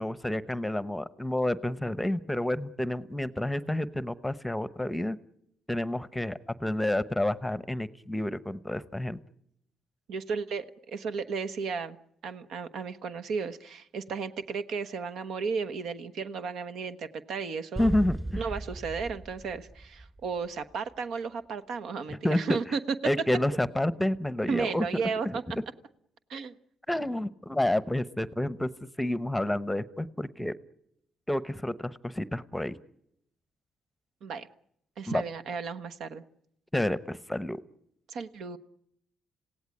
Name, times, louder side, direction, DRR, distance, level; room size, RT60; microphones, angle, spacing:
voice 1, 0.0-5.2 5.7-9.2 17.8-18.4 22.1-22.4 23.0-24.8 25.2-25.3 26.9-28.7 29.0-30.5 31.3-32.7 35.1-35.2 36.7-37.6, left 1 dB, 5° left, 16 dB, 0.9 m, -29 dB
voice 2, 10.1-12.0 12.2-18.0 18.4-22.8 24.5-25.4 26.3-26.5 34.2-34.5 35.0-36.2 38.1-38.6, right 5 dB, 75° right, 11 dB, 1.1 m, -34 dB
sound 1, 17.8-20.7, right 1 dB, 20° right, 2.7 m, -37 dB
27.0 x 17.0 x 9.7 m, 0.77 s
cardioid pair, 90°, 0 cm